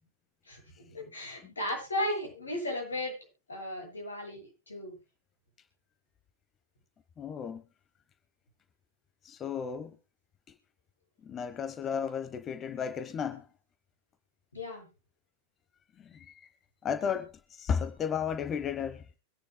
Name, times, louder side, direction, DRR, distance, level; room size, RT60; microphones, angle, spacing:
voice 1, 0.5-3.1 3.5-4.9 14.5-14.9, left 1 dB, 75° left, 7.3 m, -35 dB
voice 2, 7.2-7.6 9.2-9.9 11.2-13.5 16.0-16.5 16.8-19.2, left 7 dB, 25° left, 1.0 m, -34 dB
24.5 x 10.0 x 2.2 m
figure-of-eight pair, 90°, 0 cm